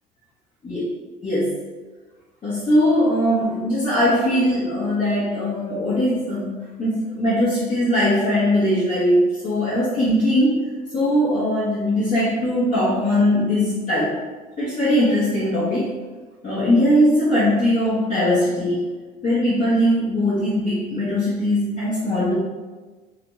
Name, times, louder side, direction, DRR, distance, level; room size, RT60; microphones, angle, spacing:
voice 1, 1.2-1.6 2.4-10.6 10.9-14.2 14.6-16.0 16.4-18.9 19.2-22.3, equal, 35° left, -10 dB, 0.9 m, -20 dB
2.5 x 2.1 x 3.0 m, 1.3 s
hypercardioid pair, 60°, 21 cm